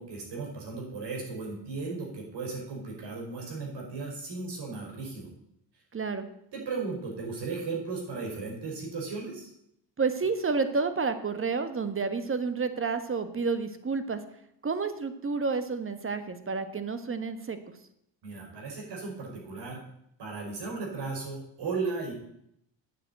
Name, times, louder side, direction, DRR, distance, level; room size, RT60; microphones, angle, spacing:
voice 1, 0.0-5.3 6.5-9.5 18.2-19.8 20.2-22.1, right 4 dB, 65° right, -1 dB, 5.2 m, -36 dB
voice 2, 5.9-6.3 10.0-14.2 14.6-17.6, right 4 dB, 30° right, 10 dB, 1.4 m, -30 dB
9.4 x 7.3 x 8.1 m, 0.75 s
cardioid pair, 90°, 44 cm